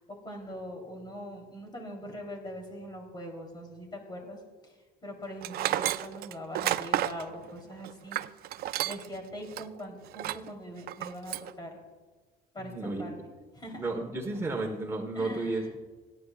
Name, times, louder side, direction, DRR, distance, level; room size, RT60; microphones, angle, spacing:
voice 1, 0.0-8.2 8.8-11.8 12.5-13.3 13.5-13.9 15.1-15.7, equal, 25° left, 1 dB, 3.8 m, -42 dB
Tools, 5.4-9.2 9.5-9.6 10.1-10.5 10.9-11.5, right 13 dB, 65° right, 0.4 m, -31 dB
voice 2, 12.6-13.1 13.8-15.8, right 2 dB, 15° right, 0 dB, 1.5 m, -33 dB
29.0 x 10.0 x 2.5 m, 1.4 s
cardioid pair, 110°, 17 cm